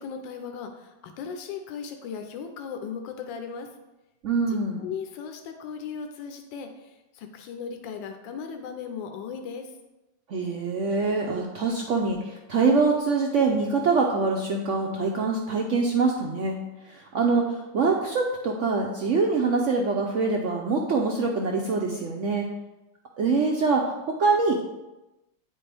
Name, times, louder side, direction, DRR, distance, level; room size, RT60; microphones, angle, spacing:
voice 1, 0.0-3.7 4.5-9.7, left 6 dB, 80° left, 5 dB, 1.3 m, -37 dB
voice 2, 4.2-4.8 10.3-16.6 16.9-22.4 23.2-24.6, right 4 dB, 85° right, 1 dB, 0.6 m, -24 dB
9.0 x 4.4 x 3.3 m, 1.0 s
omnidirectional pair, 2.0 m